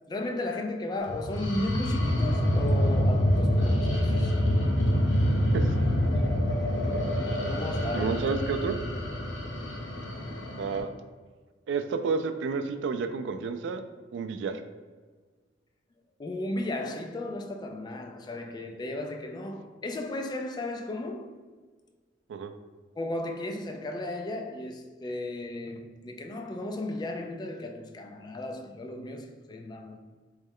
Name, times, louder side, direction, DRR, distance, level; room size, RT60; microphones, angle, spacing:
voice 1, 0.1-4.4 7.5-8.2 16.2-21.3 23.0-30.0, left 2 dB, 25° left, 0.3 m, -35 dB
sound 1, 1.1-10.8, equal, 75° left, 0.7 m, -26 dB
voice 2, 7.9-8.7 10.6-10.9 11.7-13.8 14.1-14.6 22.3-22.5, right 5 dB, 70° right, 0.3 m, -30 dB
3.1 x 3.1 x 3.6 m
head